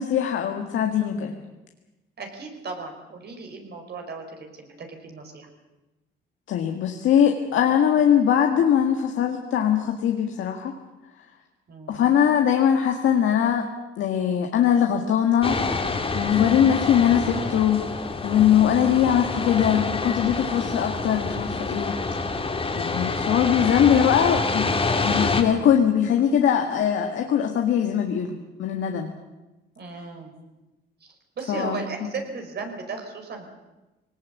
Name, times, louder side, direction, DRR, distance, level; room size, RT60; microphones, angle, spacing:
voice 1, 0.0-1.3 6.5-10.7 11.9-13.7 14.0-15.6 16.1-17.8 18.2-22.0 22.8-29.1 31.5-31.9, left 9 dB, 75° left, 3 dB, 1.9 m, -21 dB
voice 2, 2.2-5.5 11.7-12.0 29.8-30.3 31.0-33.5, right 4 dB, 55° right, 3 dB, 5.2 m, -36 dB
sound 1, 15.4-25.4, left 3 dB, 30° left, 2.7 m, -27 dB
20.5 x 19.0 x 8.4 m, 1.1 s
cardioid pair, 90°, 20 cm